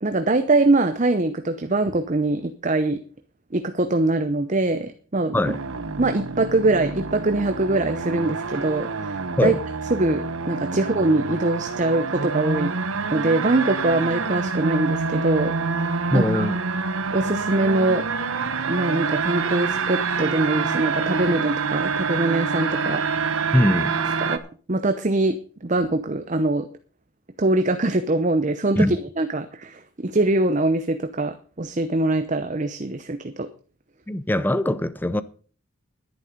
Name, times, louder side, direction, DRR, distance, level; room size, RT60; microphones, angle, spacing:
voice 1, 0.0-3.0 3.5-5.5 6.0-9.5 9.9-12.7 13.1-15.5 16.1-16.5 17.1-18.0 18.7-23.4 24.2-24.4 24.7-26.7 27.4-33.5, right 2 dB, 35° right, 0.8 m, -23 dB
sound 1, 5.4-24.4, right 4 dB, 70° right, 1.1 m, -27 dB
voice 2, 16.1-16.6 23.5-24.0 28.8-29.0 34.1-35.2, left 1 dB, 10° left, 0.5 m, -21 dB
11.5 x 10.5 x 5.2 m
head